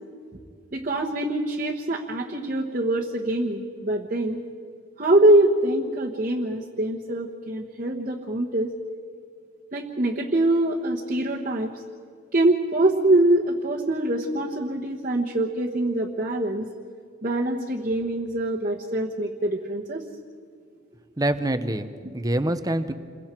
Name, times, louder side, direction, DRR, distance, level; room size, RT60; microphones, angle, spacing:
voice 1, 0.7-4.4 5.0-8.7 9.7-11.8 12.3-16.7 17.2-20.0, right 1 dB, 40° right, -3 dB, 1.3 m, -24 dB
voice 2, 21.2-22.9, right 1 dB, 20° right, 10 dB, 0.8 m, -25 dB
28.5 x 22.5 x 4.6 m, 2.2 s
head